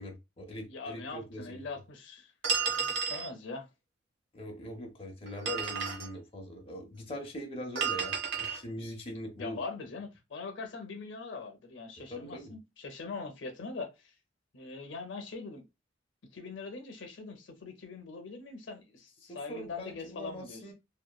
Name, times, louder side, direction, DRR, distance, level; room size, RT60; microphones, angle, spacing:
voice 1, 0.0-1.6 4.3-9.6 12.1-12.5 19.3-20.7, equal, 30° left, 0.6 m, -42 dB
voice 2, 0.7-2.3 2.6-3.7 9.4-14.1 14.5-15.6 16.3-20.6, left 4 dB, 75° left, 0.6 m, -42 dB
sound 1, 2.4-3.3 5.3-6.1 7.8-8.6, right 6 dB, 85° right, 0.8 m, -32 dB
2.9 x 2.2 x 2.2 m
head